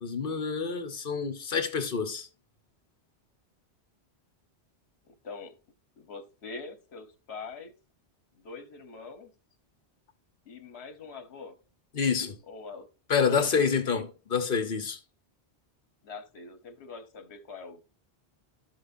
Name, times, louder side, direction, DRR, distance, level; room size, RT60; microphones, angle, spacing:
voice 1, 0.0-2.3 11.9-12.4 13.1-15.0, left 6 dB, 55° left, 1.3 m, -27 dB
voice 2, 5.0-5.6 6.0-7.7 8.3-9.3 10.4-11.6 12.5-12.9 13.5-14.1 16.0-17.8, left 4 dB, 70° left, 1.4 m, -44 dB
12.5 x 6.1 x 2.7 m
omnidirectional pair, 1.1 m